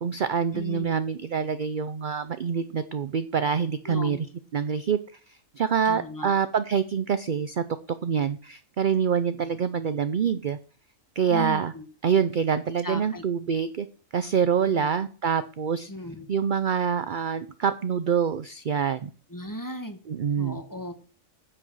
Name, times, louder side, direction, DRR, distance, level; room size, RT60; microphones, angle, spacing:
voice 1, 0.0-4.3 4.5-5.0 5.3-7.6 8.0-10.6 11.2-11.7 12.0-13.9 14.1-15.9 16.3-19.1 20.1-20.6, right 7 dB, 50° right, 12 dB, 0.6 m, -26 dB
voice 2, 0.5-1.0 3.9-4.2 5.8-6.3 11.3-11.8 12.8-13.2 14.7-14.9 15.9-16.3 19.3-20.0 20.4-20.9, equal, 15° left, 8 dB, 1.4 m, -36 dB
9.5 x 7.9 x 6.2 m, 0.38 s
omnidirectional pair, 1.5 m